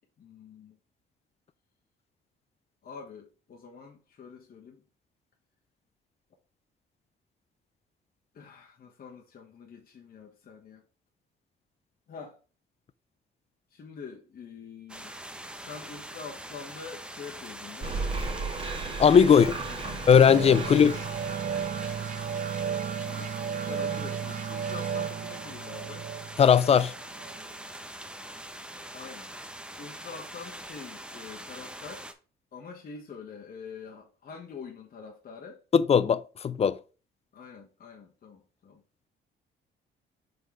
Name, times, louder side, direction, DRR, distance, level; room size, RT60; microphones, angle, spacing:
voice 1, 0.2-0.8 2.8-4.8 8.3-10.8 12.1-12.4 13.7-15.1 15.6-18.1 19.3-20.0 20.6-21.1 23.1-23.3 23.6-26.1 28.9-29.3 29.8-32.1 32.5-35.6 37.3-38.8, left 5 dB, 50° left, 1.2 m, -45 dB
sound 1, 14.9-32.1, right 1 dB, 5° right, 0.8 m, -43 dB
sound 2, 17.8-23.3, right 3 dB, 25° right, 1.4 m, -36 dB
voice 2, 19.0-19.5 20.1-20.9 26.4-26.9 35.7-36.8, left 7 dB, 30° left, 0.4 m, -18 dB
sound 3, 20.3-27.5, right 8 dB, 40° right, 0.5 m, -34 dB
5.2 x 3.8 x 4.8 m
cardioid pair, 90°, 20 cm